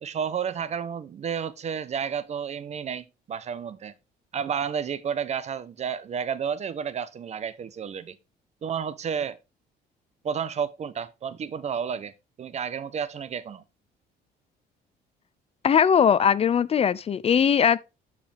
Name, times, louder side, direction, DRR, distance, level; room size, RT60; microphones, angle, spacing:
voice 1, 0.0-3.9 4.3-8.2 8.6-9.4 10.2-13.6, right 7 dB, 40° right, 0.9 m, -31 dB
voice 2, 15.6-17.8, left 7 dB, 35° left, 0.5 m, -20 dB
12.0 x 4.9 x 3.5 m
cardioid pair, 110°, 17 cm